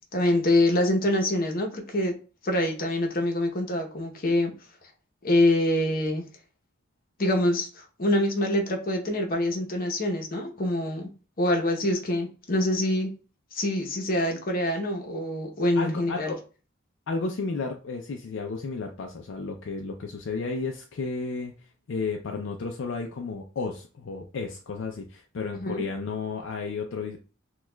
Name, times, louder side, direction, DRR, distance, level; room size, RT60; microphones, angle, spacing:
voice 1, 0.1-2.1 2.4-4.5 5.2-6.3 7.2-11.1 11.4-13.1 13.5-16.3 25.5-25.8, left 1 dB, 45° left, 1 dB, 0.8 m, -25 dB
voice 2, 15.8-16.4 17.1-21.5 21.9-27.2, left 4 dB, 65° left, 2 dB, 0.4 m, -32 dB
6.1 x 2.3 x 2.2 m, 0.37 s
head